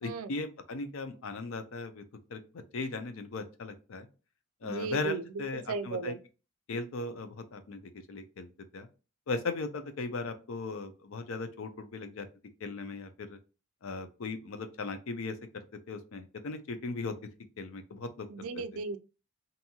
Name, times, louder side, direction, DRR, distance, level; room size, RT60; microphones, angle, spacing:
voice 1, 0.0-2.0 2.3-4.1 4.6-6.1 6.7-8.9 9.3-12.3 12.6-13.4 13.8-17.1 17.6-18.3, left 3 dB, 70° left, 0.5 m, -38 dB
voice 2, 4.6-5.2 5.7-6.2 18.3-19.0, right 4 dB, 85° right, 0.4 m, -35 dB
2.8 x 2.7 x 2.2 m
head